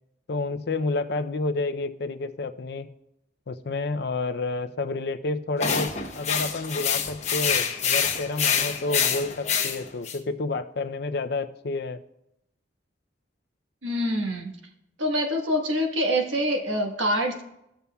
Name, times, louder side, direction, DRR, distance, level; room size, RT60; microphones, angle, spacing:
voice 1, 0.3-2.9 3.5-12.0, left 3 dB, 55° left, 10 dB, 0.5 m, -30 dB
sound 1, 5.6-10.2, left 7 dB, 35° left, 0.9 m, -26 dB
voice 2, 13.8-14.5 15.0-17.4, equal, 80° right, 2 dB, 1.4 m, -25 dB
16.0 x 6.9 x 2.3 m, 0.85 s
head